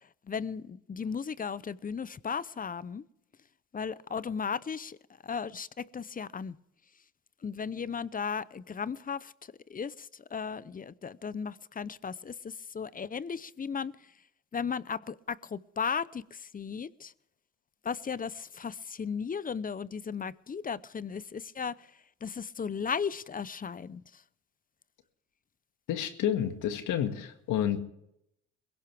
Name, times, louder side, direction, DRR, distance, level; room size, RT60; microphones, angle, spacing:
voice 1, 0.0-3.0 3.7-5.0 5.2-6.6 7.4-14.1 14.5-17.1 17.8-21.9 22.2-24.2, left 6 dB, 30° left, 0.6 m, -36 dB
voice 2, 25.9-27.8, left 10 dB, 85° left, 1.9 m, -30 dB
22.0 x 16.5 x 3.4 m
cardioid pair, 90°, 30 cm